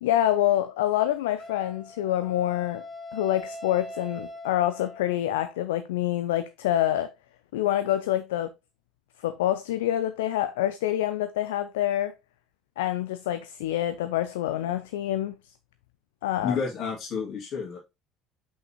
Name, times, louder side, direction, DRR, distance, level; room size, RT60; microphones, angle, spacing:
voice 1, 0.0-2.8 3.1-7.1 7.5-8.5 9.2-12.1 12.8-15.4 16.2-16.6, left 13 dB, 70° left, 0.4 m, -26 dB
Wind instrument woodwind instrument, 1.4-5.4, left 1 dB, 15° left, 1.4 m, -42 dB
voice 2, 16.4-17.8, left 6 dB, 50° left, 2.1 m, -30 dB
5.9 x 5.6 x 2.9 m
figure-of-eight pair, 60°, 0 cm